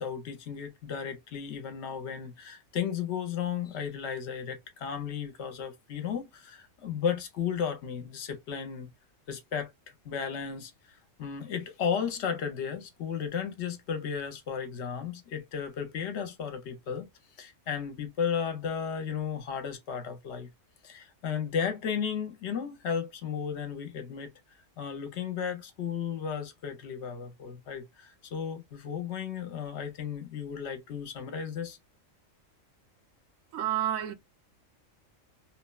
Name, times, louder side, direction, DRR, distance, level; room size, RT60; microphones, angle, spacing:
voice 1, 0.0-8.9 9.3-9.7 10.0-10.7 11.2-17.1 17.4-20.5 20.8-24.3 24.8-31.8, left 7 dB, 65° left, 0.8 m, -34 dB
voice 2, 33.5-34.1, right 11 dB, 90° right, 1.0 m, -29 dB
3.0 x 2.1 x 2.2 m
omnidirectional pair, 1.4 m